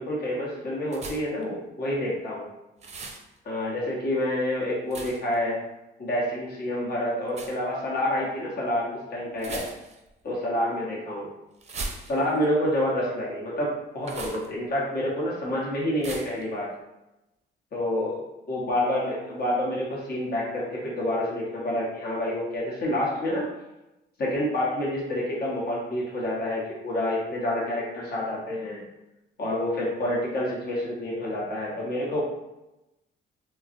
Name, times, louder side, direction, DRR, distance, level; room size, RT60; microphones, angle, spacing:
voice 1, 0.0-2.5 3.4-5.6 6.0-9.6 10.2-11.3 12.0-16.7 17.7-18.2 18.5-23.4 24.2-28.8 29.4-32.2, left 1 dB, 50° left, -5 dB, 1.0 m, -28 dB
sound 1, 0.9-1.4 2.8-3.2 4.9-5.3 7.3-7.6 9.4-10.1 11.6-12.4 14.0-14.5 16.0-16.4, right 3 dB, 35° right, 0.5 m, -38 dB
3.7 x 2.0 x 2.6 m, 0.96 s
cardioid pair, 90°, 20 cm